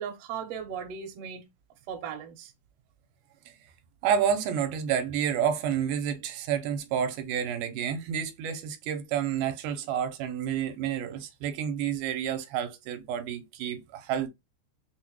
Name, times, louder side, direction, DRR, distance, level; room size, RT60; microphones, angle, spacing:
voice 1, 0.0-1.4 1.9-2.5, right 7 dB, 70° right, 1.6 m, -37 dB
voice 2, 4.0-14.3, right 8 dB, 85° right, 2.1 m, -29 dB
6.0 x 2.1 x 3.0 m
omnidirectional pair, 3.7 m